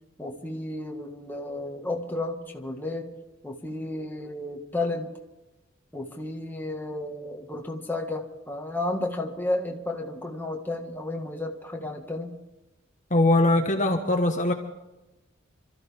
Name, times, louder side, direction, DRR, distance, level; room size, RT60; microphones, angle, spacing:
voice 1, 0.2-3.1 3.4-5.1 5.9-12.4, left 2 dB, 10° left, 1 dB, 1.7 m, -32 dB
voice 2, 13.1-14.5, left 2 dB, 40° left, 3 dB, 1.3 m, -21 dB
27.5 x 14.0 x 3.6 m, 1.0 s
head